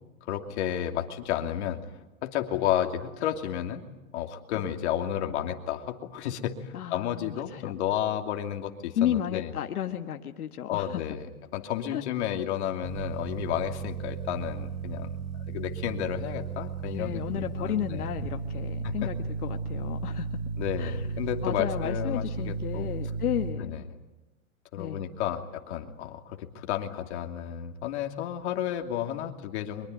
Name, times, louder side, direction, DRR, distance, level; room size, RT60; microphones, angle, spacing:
voice 1, 0.2-1.8 2.2-3.8 4.1-9.5 10.7-15.1 15.5-18.1 18.8-19.1 20.6-22.9 23.6-23.8 24.7-29.9, left 11 dB, 50° left, 5 dB, 2.8 m, -32 dB
voice 2, 6.7-7.7 8.9-11.0 11.9-12.0 16.9-20.3 20.8-21.0 21.4-23.9 24.8-25.0, left 10 dB, 85° left, 5 dB, 1.6 m, -32 dB
sound 1, 12.8-23.5, right 4 dB, 55° right, 7.3 m, -34 dB
24.0 x 22.5 x 9.4 m, 1.1 s
hypercardioid pair, 160°, 43 cm